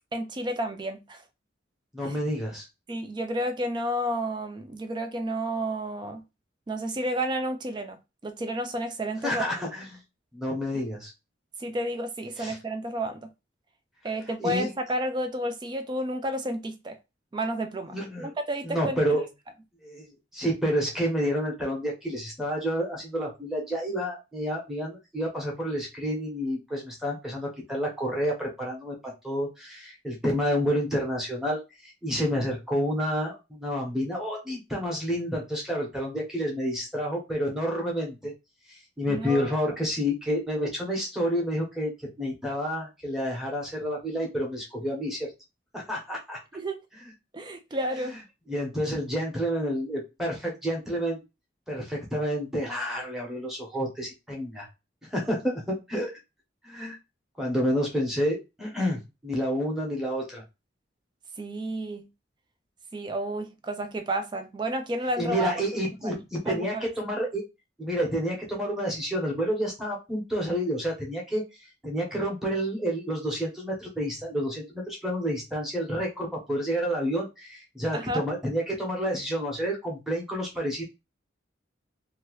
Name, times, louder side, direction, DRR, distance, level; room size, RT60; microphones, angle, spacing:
voice 1, 0.1-1.2 2.0-2.2 2.9-6.2 6.7-9.4 11.6-13.3 14.0-17.0 17.3-18.0 18.2-19.0 39.1-39.5 46.5-46.8 47.3-48.2 61.4-62.1 62.9-65.6 66.0-66.9 77.9-78.2, right 1 dB, 25° right, 0.3 m, -31 dB
voice 2, 1.9-2.7 9.2-9.8 10.3-11.1 12.4-12.6 14.4-14.7 17.9-18.3 18.6-19.3 19.8-29.0 29.2-38.3 39.0-41.9 42.2-45.3 45.7-46.4 48.5-51.2 51.7-54.7 55.1-56.1 56.6-57.0 57.4-60.4 65.2-67.4 67.8-71.4 71.8-80.8, equal, ahead, 0.9 m, -29 dB
2.8 x 2.3 x 3.0 m
head